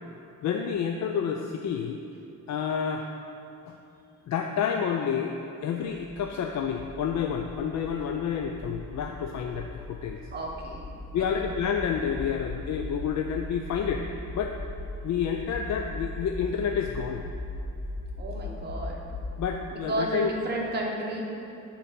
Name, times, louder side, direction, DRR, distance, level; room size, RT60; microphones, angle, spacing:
voice 1, 0.4-2.0 2.5-3.1 3.7-3.8 4.3-5.4 5.6-10.2 11.1-14.1 14.3-14.6 15.0-17.2 19.4-20.3, left 7 dB, 60° left, 3 dB, 0.5 m, -29 dB
sound 1, 6.0-19.3, left 2 dB, 20° left, 1.0 m, -39 dB
voice 2, 10.3-11.3 18.2-19.1 19.7-21.2, right 1 dB, 30° right, -1 dB, 1.1 m, -33 dB
8.2 x 4.1 x 5.8 m, 2.8 s
cardioid pair, 130°, 32 cm